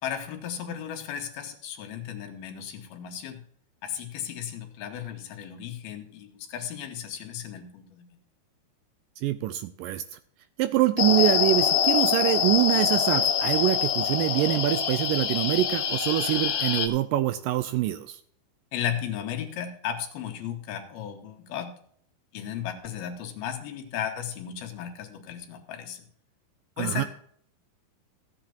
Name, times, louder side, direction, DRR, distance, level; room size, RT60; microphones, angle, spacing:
voice 1, 0.0-3.4 3.8-8.0 18.7-21.7 22.3-26.0 26.8-27.1, left 9 dB, 85° left, 4 dB, 3.2 m, -35 dB
voice 2, 9.2-10.0 10.6-18.2 26.8-27.0, right 14 dB, 80° right, 12 dB, 2.0 m, -25 dB
sound 1, 11.0-16.9, left 8 dB, 70° left, 1.8 m, -25 dB
15.5 x 9.0 x 2.9 m, 0.63 s
omnidirectional pair, 4.3 m